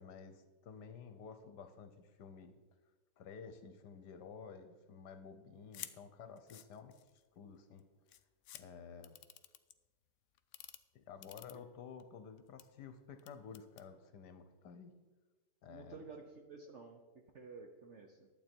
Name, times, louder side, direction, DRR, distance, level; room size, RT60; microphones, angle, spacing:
voice 1, 0.0-2.6 3.2-7.0 7.3-7.9 8.5-9.2 10.9-14.9 15.6-16.0, left 6 dB, 65° left, 9 dB, 1.3 m, -52 dB
sound 1, 5.7-5.9 6.4-7.2 7.8-7.9 8.1-8.6 9.0-9.7 10.4-10.8 11.2-12.0 12.4-12.6 13.2-13.8, left 12 dB, 85° left, 0.7 m, -50 dB
voice 2, 15.7-17.0 17.3-18.3, right 4 dB, 55° right, 3 dB, 0.8 m, -52 dB
11.5 x 8.0 x 4.5 m, 1.2 s
omnidirectional pair, 2.1 m